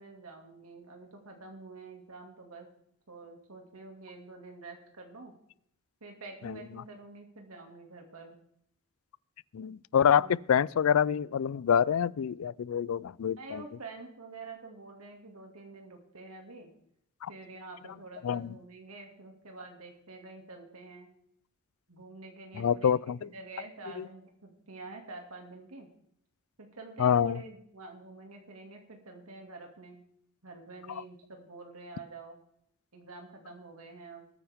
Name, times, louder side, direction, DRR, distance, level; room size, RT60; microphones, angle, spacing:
voice 1, 0.0-2.7 3.1-5.3 6.0-8.4 10.2-10.4 13.4-16.7 17.3-21.1 21.9-25.9 26.6-30.0 30.4-32.4 32.9-34.3, right 3 dB, 85° right, 2.2 m, -47 dB
voice 2, 9.5-13.6 17.2-17.3 18.2-18.5 22.6-23.3 24.0-24.1 27.0-27.4 30.9-31.0, left 8 dB, 70° left, 0.4 m, -26 dB
20.5 x 9.3 x 3.5 m
head